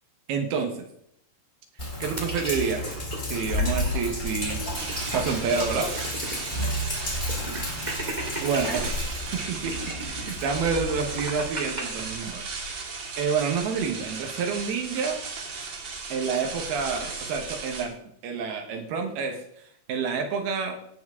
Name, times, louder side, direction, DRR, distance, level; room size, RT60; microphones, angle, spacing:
voice 1, 0.3-0.9 1.8-3.0 3.2-4.6 5.1-5.9 8.4-9.0 9.3-9.8 10.1-12.5 12.8-12.9 13.2-15.2 16.1-19.4 19.9-20.8, right 5 dB, 80° right, 3 dB, 3.1 m, -28 dB
Sink (filling or washing), 1.8-11.5, left 1 dB, 20° left, 2.9 m, -32 dB
sound 1, 2.2-3.9 4.3-4.4 4.6-6.4 6.7-6.8 7.3-8.9 9.5-11.8, right 2 dB, 30° right, 0.8 m, -36 dB
sound 2, 4.7-17.9, right 4 dB, 55° right, 2.6 m, -36 dB
18.0 x 7.1 x 3.6 m, 0.72 s
omnidirectional pair, 4.5 m